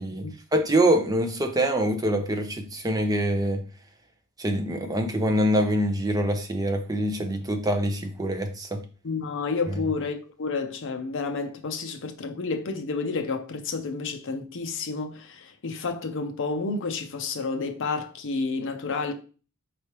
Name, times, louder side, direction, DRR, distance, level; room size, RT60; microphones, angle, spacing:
voice 1, 0.0-3.6 4.4-8.8 9.7-9.8, right 1 dB, 15° right, 0.6 m, -25 dB
voice 2, 9.0-19.1, left 4 dB, 60° left, 0.6 m, -30 dB
4.5 x 3.3 x 2.9 m
head